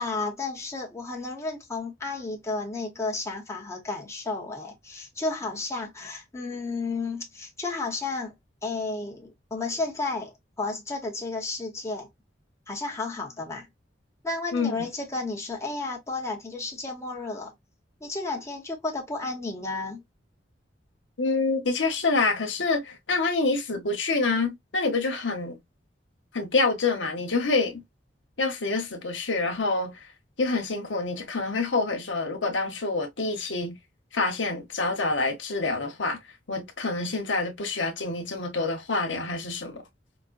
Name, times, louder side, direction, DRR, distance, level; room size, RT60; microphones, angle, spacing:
voice 1, 0.0-8.3 8.6-12.1 12.7-13.7 14.2-17.5 18.0-20.0, left 3 dB, 15° left, 1.1 m, -32 dB
voice 2, 21.2-25.6 26.3-27.8 28.4-30.0 30.4-33.8 34.1-36.2 36.5-39.8, left 3 dB, 90° left, 1.1 m, -27 dB
5.2 x 2.1 x 2.6 m
head